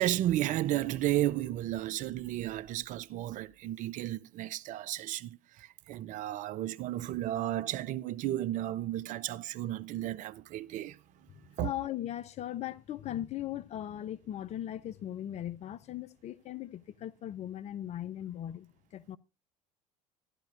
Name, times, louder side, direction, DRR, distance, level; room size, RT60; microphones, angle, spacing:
voice 1, 0.0-11.0 11.6-11.7, right 14 dB, 45° right, 0.5 m, -33 dB
voice 2, 11.6-19.2, left 12 dB, 35° left, 0.5 m, -38 dB
14.5 x 11.5 x 2.5 m
hypercardioid pair, 70°, 18 cm